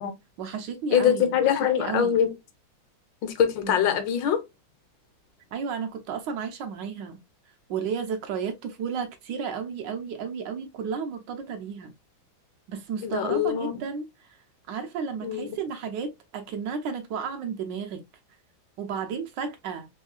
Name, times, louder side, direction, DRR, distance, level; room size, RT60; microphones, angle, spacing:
voice 1, 0.4-1.3 1.7-2.2 3.6-4.0 5.5-7.2 7.7-11.9 12.7-14.4 14.7-18.0 18.8-19.9, right 6 dB, 75° right, 1.2 m, -33 dB
voice 2, 0.9-2.3 3.2-4.4 13.0-13.7 15.2-15.6, left 9 dB, 75° left, 1.3 m, -23 dB
3.5 x 3.1 x 2.3 m
omnidirectional pair, 2.2 m